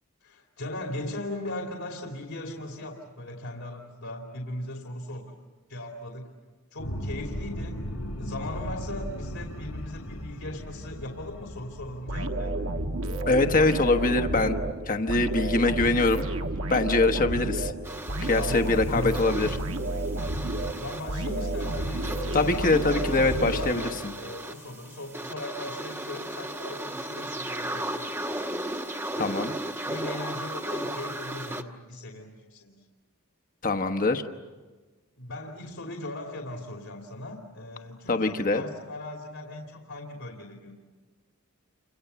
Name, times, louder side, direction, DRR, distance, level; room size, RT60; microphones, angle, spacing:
voice 1, 0.2-5.3 5.7-6.3 6.7-7.8 8.2-12.6 18.3-19.2 20.8-28.6 29.1-29.3 29.9-32.8 35.2-40.7, left 1 dB, 70° left, 1 dB, 2.8 m, -38 dB
sound 1, 6.8-13.6, equal, 90° left, 4.5 m, -37 dB
sound 2, 12.1-24.3, right 2 dB, 65° right, 1.5 m, -31 dB
voice 2, 13.2-14.6 14.9-16.3 16.7-17.7 18.2-19.5 22.3-24.1 29.2-29.5 33.6-34.2 38.1-38.6, left 3 dB, 40° left, 6 dB, 1.2 m, -23 dB
sound 3, 17.8-31.6, right 1 dB, 10° right, 1.2 m, -36 dB
30.0 x 26.5 x 6.9 m, 1.3 s
head